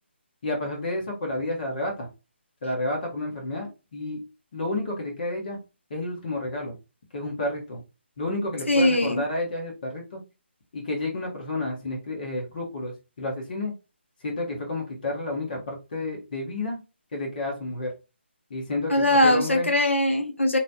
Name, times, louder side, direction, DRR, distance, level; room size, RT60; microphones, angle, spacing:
voice 1, 0.4-2.1 2.6-4.2 4.5-5.6 5.9-6.7 7.1-7.8 8.2-10.2 10.7-13.7 14.2-16.8 17.1-17.9 18.5-19.7, left 2 dB, 45° left, 1.2 m, -30 dB
voice 2, 8.7-9.3 18.9-20.6, left 1 dB, 90° left, 0.8 m, -21 dB
3.1 x 2.2 x 2.8 m
figure-of-eight pair, 155°, 6 cm